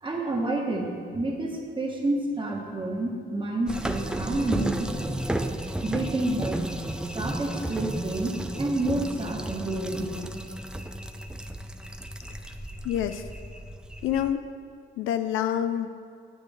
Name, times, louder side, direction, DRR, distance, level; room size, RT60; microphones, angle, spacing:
voice 1, 0.0-5.2 5.8-6.6 7.1-10.1, right 2 dB, 25° right, 0 dB, 1.4 m, -29 dB
sound 1, 3.7-14.3, right 1 dB, 5° right, 0.4 m, -33 dB
voice 2, 12.8-13.2 14.0-14.4 15.0-15.9, left 10 dB, 85° left, 9 dB, 0.5 m, -27 dB
9.2 x 7.8 x 3.5 m, 2.2 s
cardioid pair, 90°, 20 cm